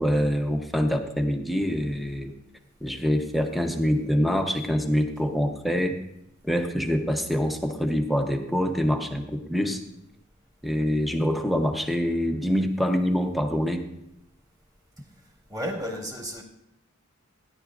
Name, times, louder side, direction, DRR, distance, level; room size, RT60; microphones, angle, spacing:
voice 1, 0.0-2.3 2.8-6.0 6.4-9.8 10.6-13.8, equal, ahead, 4 dB, 0.9 m, -25 dB
voice 2, 15.5-16.4, equal, 20° right, -2 dB, 2.1 m, -32 dB
16.5 x 11.0 x 2.6 m, 0.84 s
head